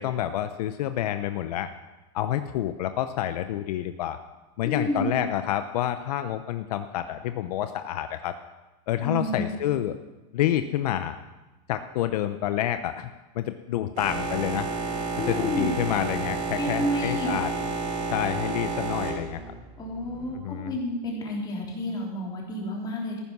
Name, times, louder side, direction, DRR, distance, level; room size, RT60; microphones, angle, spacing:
voice 1, 0.0-1.7 2.1-4.2 4.6-8.3 8.9-10.0 10.3-11.2 11.7-13.1 13.4-14.7 15.3-17.5 18.1-19.4 20.3-20.8, left 12 dB, 70° left, 10 dB, 0.7 m, -28 dB
voice 2, 4.6-5.2 9.0-9.5 15.2-15.7 16.6-17.3 19.8-23.2, left 1 dB, 20° left, -2 dB, 3.3 m, -30 dB
Boat Water vehicle, 14.0-20.3, right 3 dB, 40° right, 4.3 m, -31 dB
14.5 x 11.0 x 6.1 m, 1.1 s
supercardioid pair, 165°, 21 cm